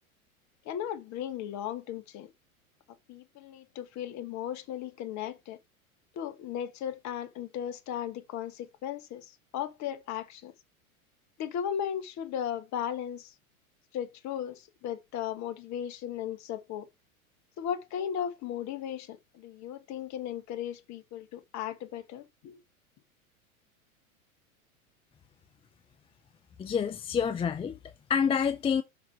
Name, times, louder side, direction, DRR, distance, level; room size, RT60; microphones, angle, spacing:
voice 1, 0.6-2.3 3.1-5.6 6.1-10.5 11.4-13.3 13.9-16.9 17.6-22.6, left 9 dB, 40° left, 1.3 m, -36 dB
voice 2, 26.6-27.7 28.1-28.8, left 7 dB, 15° left, 0.5 m, -27 dB
6.0 x 4.9 x 4.6 m
hypercardioid pair, 95°, 43 cm